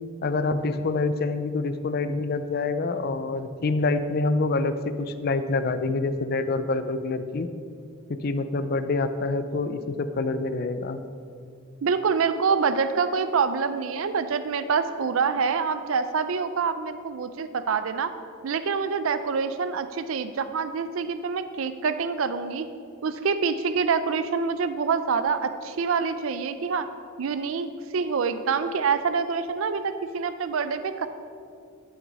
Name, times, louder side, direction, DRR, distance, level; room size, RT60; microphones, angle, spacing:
voice 1, 0.2-7.5 8.1-11.0, left 3 dB, 50° left, 10 dB, 0.5 m, -26 dB
voice 2, 11.8-18.1 18.4-22.7 23.0-26.9 27.2-31.1, right 5 dB, 70° right, 11 dB, 0.4 m, -26 dB
12.0 x 6.0 x 4.0 m, 2.4 s
head